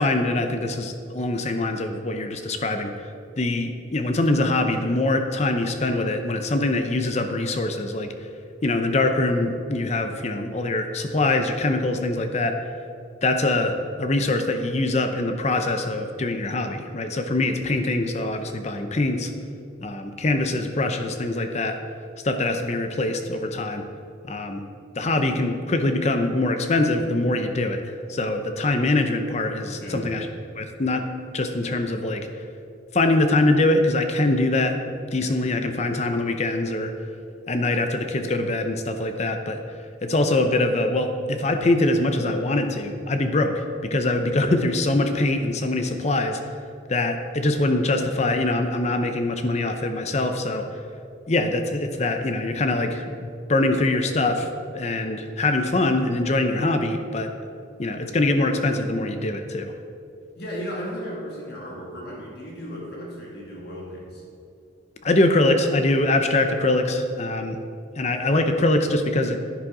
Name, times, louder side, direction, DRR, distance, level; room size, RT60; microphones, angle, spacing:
voice 1, 0.0-2.9 3.4-8.1 8.6-12.6 13.2-19.3 19.8-21.8 22.2-23.8 24.3-24.6 25.0-30.3 30.6-31.0 31.3-32.3 32.9-34.8 35.1-36.9 37.5-39.6 40.0-46.4 46.9-50.7 51.3-57.3 57.8-59.7 65.0-67.6 68.0-69.4, left 2 dB, 35° left, 6 dB, 0.6 m, -23 dB
voice 2, 60.4-64.2, equal, 55° left, -4 dB, 2.3 m, -35 dB
11.0 x 10.0 x 3.8 m, 2.5 s
head